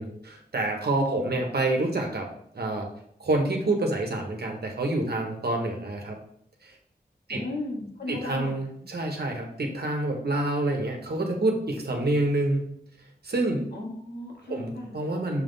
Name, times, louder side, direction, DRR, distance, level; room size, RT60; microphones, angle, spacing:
voice 1, 0.0-2.2 2.5-2.9 3.2-6.1 6.6-6.8 7.3-7.4 8.1-12.7 13.2-13.7 14.5-15.4, right 2 dB, 70° right, 2 dB, 1.1 m, -27 dB
voice 2, 7.3-8.5 13.7-15.0, left 2 dB, 75° left, -1 dB, 1.5 m, -36 dB
6.5 x 3.7 x 4.0 m, 0.68 s
wide cardioid pair, 75°, 17 cm